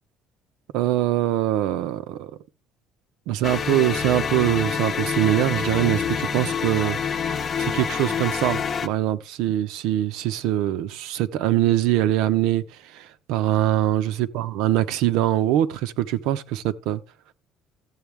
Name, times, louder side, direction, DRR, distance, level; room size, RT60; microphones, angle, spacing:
voice 1, 0.7-2.3 3.3-7.0 7.6-12.6 12.9-17.0, right 13 dB, 85° right, 0.9 m, -23 dB
sound 1, 3.4-8.9, left 6 dB, 30° left, 0.8 m, -27 dB
14.5 x 8.1 x 3.5 m
cardioid pair, 165°, 0 cm